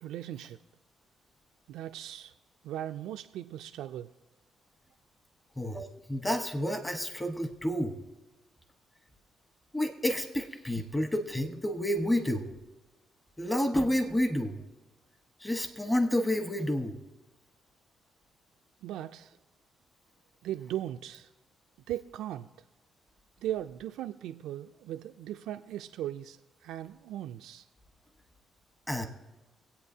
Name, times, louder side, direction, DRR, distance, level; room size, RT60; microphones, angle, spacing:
voice 1, 0.0-0.6 1.7-2.3 2.6-4.1 18.8-19.4 20.4-21.3 21.9-22.5 23.4-27.6, right 12 dB, 85° right, 7 dB, 0.3 m, -38 dB
voice 2, 5.6-8.0 9.7-12.5 13.4-14.6 15.4-17.0 28.9-29.1, left 1 dB, 15° left, 6 dB, 1.2 m, -30 dB
24.0 x 8.4 x 2.8 m, 1.1 s
cardioid pair, 90°, 0 cm